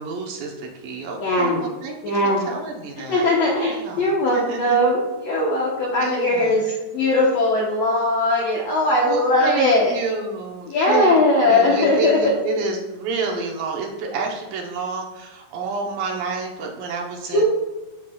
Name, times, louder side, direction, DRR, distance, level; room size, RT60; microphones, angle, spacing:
voice 1, 0.0-2.2 2.5-3.3 3.7-4.8 6.0-6.8 9.0-11.2 11.4-17.5, right 4 dB, 75° right, 0 dB, 2.5 m, -29 dB
voice 2, 1.2-1.6 2.0-2.5 3.1-9.9 10.7-12.2 17.3-17.5, left 1 dB, 65° left, -4 dB, 1.6 m, -19 dB
12.0 x 4.7 x 2.3 m, 1.1 s
omnidirectional pair, 4.2 m